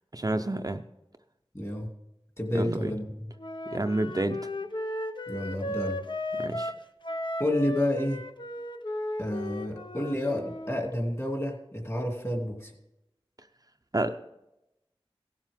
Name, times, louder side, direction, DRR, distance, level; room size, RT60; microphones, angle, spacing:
voice 1, 0.1-0.8 2.5-2.9 3.7-4.4 6.4-6.7 13.9-14.1, right 2 dB, 35° right, 6 dB, 0.6 m, -29 dB
voice 2, 1.5-1.9 2.4-3.3 5.3-6.0 7.4-8.2 9.2-12.7, left 1 dB, 30° left, 1 dB, 2.5 m, -30 dB
Wind instrument woodwind instrument, 3.4-10.8, left 1 dB, 50° left, 0.7 m, -35 dB
16.5 x 7.4 x 3.6 m, 0.87 s
wide cardioid pair, 45°, 10 cm